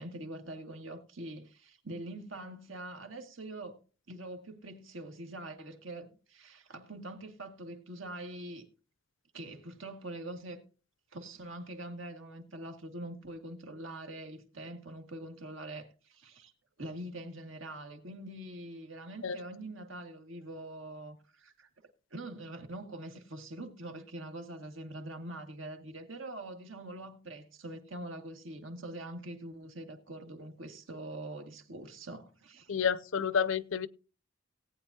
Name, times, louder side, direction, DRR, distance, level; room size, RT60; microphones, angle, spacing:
voice 1, 0.0-3.8 4.1-8.7 9.3-10.6 11.1-16.5 16.8-21.7 22.1-32.7, right 1 dB, 85° right, 1.9 m, -44 dB
voice 2, 32.7-33.9, left 7 dB, 85° left, 0.6 m, -29 dB
18.0 x 8.9 x 2.8 m
head